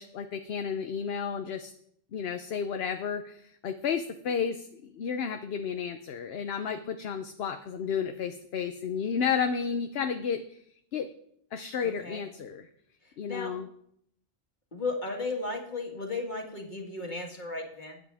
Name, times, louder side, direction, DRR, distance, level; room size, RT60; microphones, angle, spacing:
voice 1, 0.0-1.7 2.1-10.6 10.9-11.1 11.5-12.7 13.2-13.7, left 7 dB, 60° left, 7 dB, 0.9 m, -32 dB
voice 2, 11.8-12.2 13.0-13.5 14.7-18.0, left 3 dB, 40° left, 1 dB, 2.1 m, -35 dB
20.5 x 8.2 x 3.5 m, 0.69 s
omnidirectional pair, 1.2 m